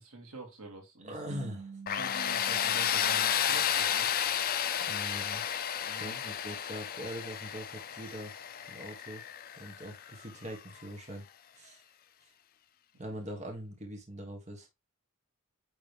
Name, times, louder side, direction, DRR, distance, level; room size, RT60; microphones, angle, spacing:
voice 1, 0.0-1.1 1.9-4.1 5.8-6.2, right 3 dB, 70° right, 2.3 m, -46 dB
voice 2, 1.0-1.8 3.9-4.1 4.8-5.4 5.9-8.3 8.7-9.2 9.6-11.2 11.5-11.8 13.0-14.7, equal, 30° right, 1.4 m, -42 dB
sound 1, 1.3-4.5, right 5 dB, 50° right, 0.4 m, -49 dB
Tools, 1.9-10.6, left 9 dB, 45° left, 0.5 m, -32 dB
9.1 x 3.2 x 3.4 m
head